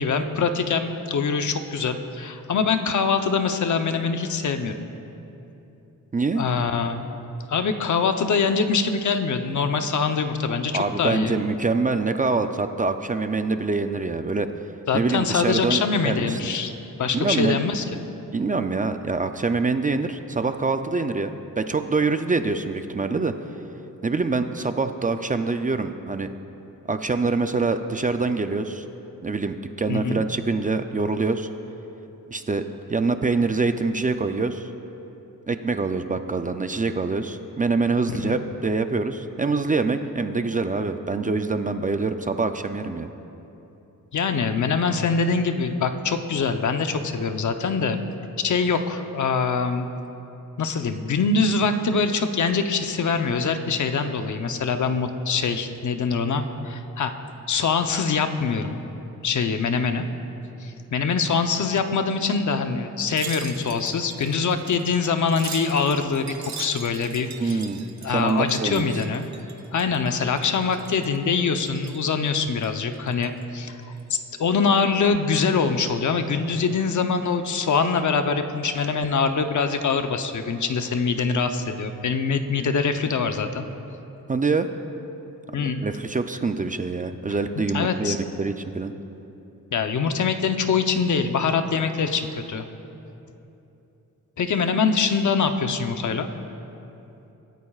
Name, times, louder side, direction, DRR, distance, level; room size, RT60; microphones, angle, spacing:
voice 1, 0.0-4.9 6.4-7.1 7.5-11.3 14.9-16.7 17.0-17.8 29.9-30.2 38.1-38.4 44.1-48.0 48.4-49.9 50.6-57.1 57.5-58.7 59.2-60.1 60.6-67.6 68.0-69.3 69.7-73.8 74.1-83.7 85.5-85.8 87.7-88.2 89.7-92.6 94.4-96.3, left 5 dB, 60° left, 7 dB, 0.8 m, -24 dB
voice 2, 6.1-6.4 10.7-14.5 14.9-16.4 17.1-17.6 18.3-23.3 24.0-26.3 26.9-28.9 29.2-31.5 32.3-34.7 35.5-43.1 67.4-68.9 84.3-84.7 85.6-88.9, right 3 dB, 25° right, 8 dB, 0.4 m, -25 dB
Wind chime, 63.0-70.1 70.4-71.2 71.5-72.1 72.5-73.4 73.8-74.0, right 6 dB, 55° right, 0.9 m, -41 dB
24.5 x 13.5 x 2.4 m, 2.9 s
wide cardioid pair, 145°, 33 cm